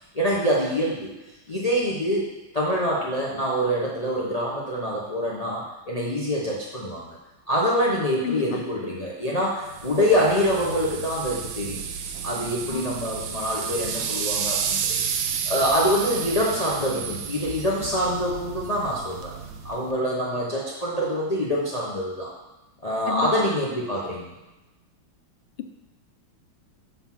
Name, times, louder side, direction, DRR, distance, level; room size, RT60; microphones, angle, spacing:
voice 1, 0.1-1.1 1.5-2.3 2.5-7.2 7.5-11.8 12.2-14.8 15.1-19.3 19.6-22.3 22.8-24.3, equal, 45° left, -4 dB, 0.4 m, -25 dB
voice 2, 8.2-8.6 12.7-13.0 23.0-23.5 25.6-25.7, left 10 dB, 80° left, 7 dB, 1.5 m, -32 dB
sound 1, 9.6-19.9, right 7 dB, 75° right, 1.2 m, -31 dB
7.0 x 3.9 x 5.8 m, 1.0 s
omnidirectional pair, 2.3 m